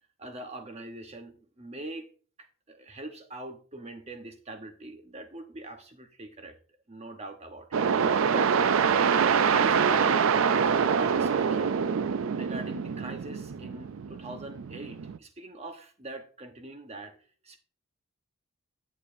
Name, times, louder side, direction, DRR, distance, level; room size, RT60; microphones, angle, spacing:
voice 1, 0.2-2.1 2.4-6.6 6.9-8.5 9.5-10.4 10.9-11.8 12.4-17.2 17.4-17.6, right 1 dB, 30° right, 1.0 m, -42 dB
sound 1, 7.7-15.2, right 6 dB, 65° right, 0.4 m, -25 dB
10.5 x 7.1 x 2.6 m
head